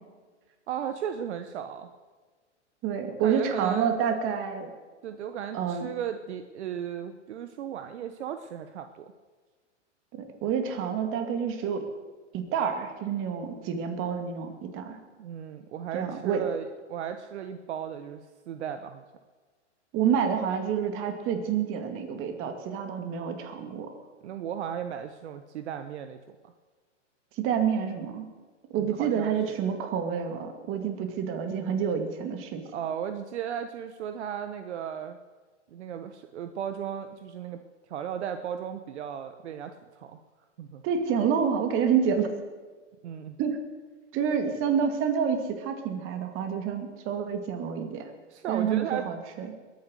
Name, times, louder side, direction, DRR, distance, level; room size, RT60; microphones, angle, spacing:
voice 1, 0.7-1.9 3.2-3.9 5.0-9.1 15.2-19.0 24.2-26.5 28.8-29.6 32.7-35.2 35.7-37.6 37.9-40.2 40.6-40.8 43.0-43.4 48.3-49.1, right 9 dB, 65° right, 9 dB, 1.1 m, -36 dB
voice 2, 2.8-4.7 5.5-5.9 10.1-11.9 12.3-15.0 15.9-16.4 19.9-23.9 27.4-28.3 28.7-32.6 40.8-42.3 43.4-43.6 44.1-48.1 48.5-49.5, right 7 dB, 35° right, 6 dB, 2.4 m, -28 dB
21.5 x 9.6 x 6.5 m, 1.4 s
hypercardioid pair, 125°, 36 cm